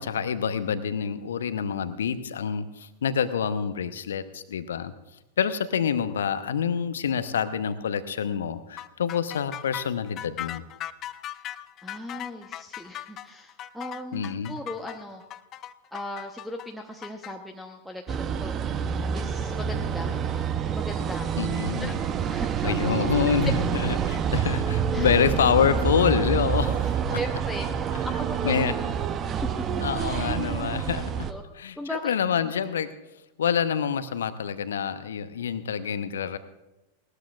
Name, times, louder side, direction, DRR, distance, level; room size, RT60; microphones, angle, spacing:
voice 1, 0.0-4.9 5.4-10.6 14.1-14.6 21.4-22.0 22.6-26.8 27.1-27.2 28.4-28.7 29.8-31.3 31.6-32.9 33.4-36.4, left 7 dB, 65° left, 12 dB, 0.9 m, -27 dB
sound 1, 8.8-17.3, left 12 dB, 35° left, 0.5 m, -38 dB
voice 2, 11.8-15.2 15.9-18.8 19.1-20.2 20.6-21.3 21.8-22.0 22.2-22.7 24.9-25.1 26.6-26.8 27.1-28.8 29.3-29.4 31.3-31.4 31.8-32.1, left 1 dB, ahead, 0 dB, 1.0 m, -38 dB
sound 2, 18.1-31.3, right 7 dB, 30° right, 0.7 m, -27 dB
19.5 x 18.5 x 2.5 m, 1.0 s
figure-of-eight pair, 90°, 0 cm